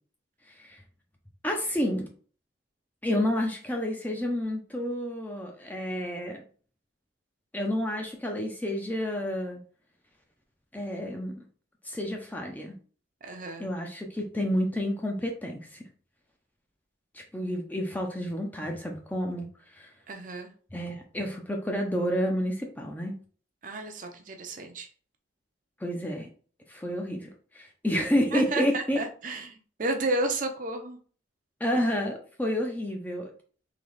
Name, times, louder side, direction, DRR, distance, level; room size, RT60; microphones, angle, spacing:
voice 1, 0.5-0.8 1.4-2.1 3.0-6.4 7.5-9.6 10.7-11.4 11.8-12.8 13.6-15.9 17.1-19.9 20.7-23.2 25.8-26.3 26.7-29.0 31.6-33.3, equal, 10° left, 2 dB, 0.5 m, -30 dB
voice 2, 13.2-13.7 20.1-20.5 23.6-24.9 28.3-31.0, right 2 dB, 40° right, 4 dB, 0.6 m, -32 dB
3.9 x 3.0 x 3.3 m, 0.42 s
head